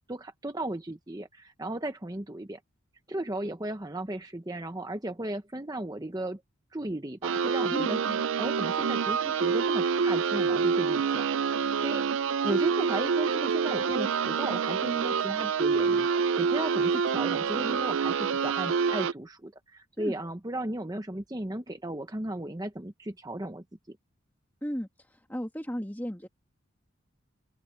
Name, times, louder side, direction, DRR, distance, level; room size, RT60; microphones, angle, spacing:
voice 1, 0.1-2.6 3.1-6.4 6.7-8.0 8.4-11.3 11.8-16.1 16.4-24.0, right 1 dB, 20° right, 0.9 m, -35 dB
sound 1, 7.2-19.1, right 6 dB, 65° right, 0.4 m, -27 dB
voice 2, 7.7-8.2 20.0-20.2 24.6-26.3, equal, 10° left, 2.0 m, -35 dB
open air
head